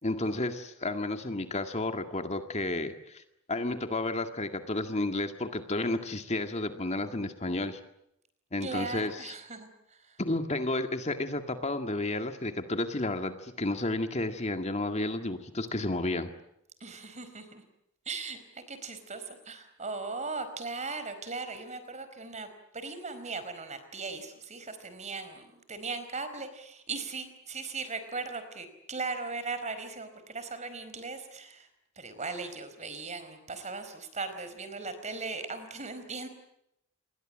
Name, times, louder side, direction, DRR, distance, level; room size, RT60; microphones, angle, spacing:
voice 1, 0.0-3.2 3.5-7.8 8.5-9.4 10.2-16.3, left 2 dB, 30° left, 7 dB, 2.0 m, -32 dB
voice 2, 8.6-10.2 16.8-17.6 18.0-18.4 18.7-22.5 22.7-31.7 32.0-36.3, right 4 dB, 35° right, 10 dB, 4.6 m, -38 dB
29.0 x 22.0 x 7.6 m, 0.80 s
head